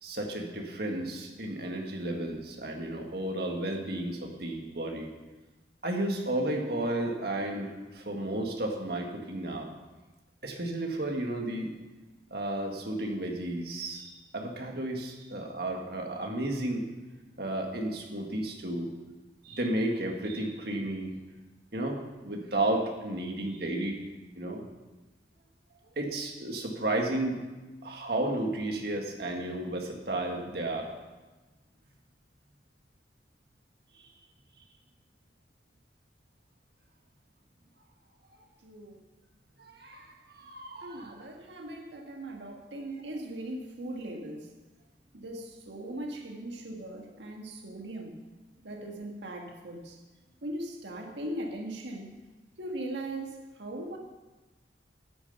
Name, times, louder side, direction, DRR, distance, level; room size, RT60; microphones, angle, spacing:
voice 1, 0.0-5.1 5.8-9.7 10.4-11.7 12.3-16.8 17.4-18.9 19.4-21.1 21.7-22.0 22.2-24.0 24.4-24.6 26.0-27.4 27.8-30.9 34.0-34.1 39.6-41.3, right 1 dB, 60° right, 2 dB, 1.9 m, -33 dB
voice 2, 38.6-39.0 40.8-44.5 45.1-48.2 48.6-50.0 50.4-52.1 52.6-54.0, right 1 dB, 75° right, 2 dB, 1.7 m, -39 dB
9.8 x 9.2 x 6.9 m, 1.2 s
head